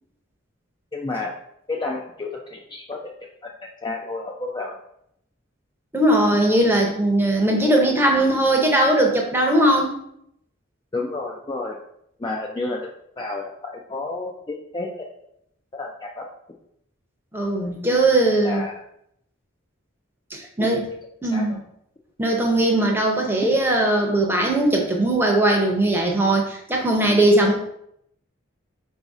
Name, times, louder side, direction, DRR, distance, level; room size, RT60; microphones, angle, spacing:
voice 1, 0.9-1.4 1.7-3.1 3.4-4.8 10.9-11.8 12.2-12.9 13.2-15.1 15.7-16.3 18.3-18.8 20.6-20.7 21.3-21.6, left 3 dB, 20° left, 0 dB, 0.3 m, -31 dB
voice 2, 5.9-10.0 17.3-18.6 20.3-20.8 21.2-21.6 22.2-27.6, right 1 dB, 10° right, 0 dB, 0.7 m, -19 dB
4.0 x 2.7 x 4.7 m, 0.74 s
head